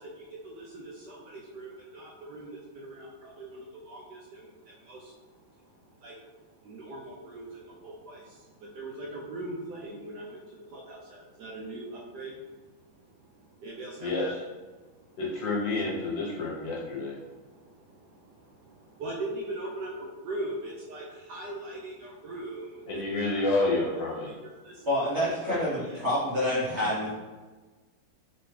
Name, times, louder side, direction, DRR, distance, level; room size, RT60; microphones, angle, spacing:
voice 1, 0.0-14.3 14.7-15.2 16.5-24.0 24.2-24.9 25.8-26.0, right 1 dB, 70° right, -4 dB, 1.0 m, -42 dB
voice 2, 14.0-14.4 15.2-17.2 22.9-24.3 25.4-25.7, left 2 dB, 70° left, -4 dB, 1.6 m, -29 dB
voice 3, 24.8-27.1, left 1 dB, 45° right, -9 dB, 1.0 m, -27 dB
3.4 x 3.1 x 3.1 m, 1.3 s
omnidirectional pair, 2.2 m